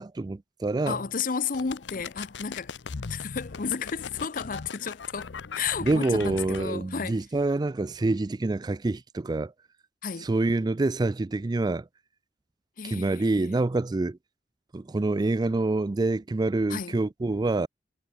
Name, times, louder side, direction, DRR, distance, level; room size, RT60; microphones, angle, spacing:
voice 1, 0.0-1.0 5.8-9.5 10.2-11.9 12.8-14.2 14.7-17.7, right 2 dB, 25° right, 0.4 m, -26 dB
voice 2, 0.9-2.7 3.1-7.2 10.0-10.3 12.8-13.6 16.7-17.0, left 6 dB, 50° left, 0.7 m, -32 dB
sound 1, 1.5-6.7, left 5 dB, 80° left, 0.7 m, -39 dB
head